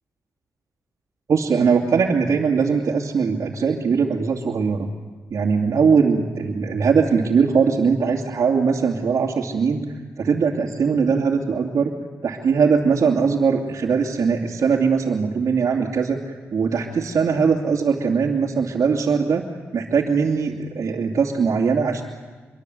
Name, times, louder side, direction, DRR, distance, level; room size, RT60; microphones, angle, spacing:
voice 1, 1.3-4.9 5.3-11.9 12.2-19.4 19.7-22.0, right 5 dB, 65° right, -2 dB, 2.7 m, -20 dB
26.0 x 23.5 x 8.0 m, 1.4 s
supercardioid pair, 40°, 6 cm